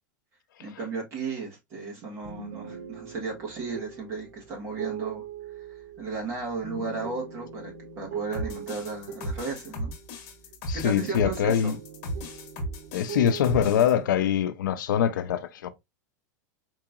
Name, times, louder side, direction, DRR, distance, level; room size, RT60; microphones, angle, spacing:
voice 1, 0.6-5.2 5.6-5.7 6.0-9.9 10.7-11.8, right 4 dB, 25° right, 1.6 m, -35 dB
sound 1, 2.2-10.5 10.8-13.9, right 6 dB, 70° right, 2.0 m, -41 dB
sound 2, 8.3-13.9, equal, 50° left, 1.4 m, -36 dB
voice 2, 10.7-11.8 12.9-15.7, left 9 dB, 90° left, 0.6 m, -24 dB
4.6 x 2.9 x 2.3 m
supercardioid pair, 165°, 10 cm